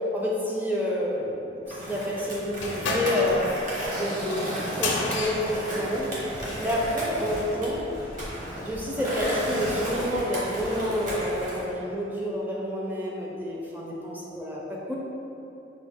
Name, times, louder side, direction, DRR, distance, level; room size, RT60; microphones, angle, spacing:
voice 1, 0.1-4.5 4.8-7.9 8.6-14.6 14.9-15.0, left 1 dB, 10° right, -4 dB, 0.5 m, -29 dB
Skateboard, 1.7-11.6, right 1 dB, 45° right, 0.9 m, -34 dB
sound 1, 2.6-6.7, left 2 dB, 75° left, 0.5 m, -32 dB
sound 2, 6.3-11.5, equal, 75° right, 1.3 m, -43 dB
4.8 x 2.3 x 3.5 m, 2.9 s
head